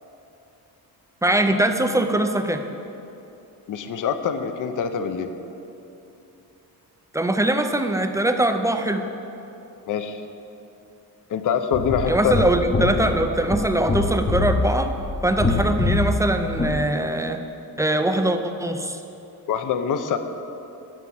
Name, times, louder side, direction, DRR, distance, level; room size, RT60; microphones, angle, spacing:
voice 1, 1.2-2.6 7.1-9.0 12.1-14.9 15.2-17.4 17.8-19.0, right 1 dB, 10° right, 6 dB, 0.4 m, -22 dB
voice 2, 3.7-5.3 9.9-10.2 11.3-12.5 19.5-20.2, left 7 dB, 55° left, 8 dB, 0.7 m, -24 dB
sound 1, 11.7-16.8, left 2 dB, 20° left, 0.7 m, -25 dB
12.0 x 5.8 x 7.6 m, 2.9 s
wide cardioid pair, 175°, 38 cm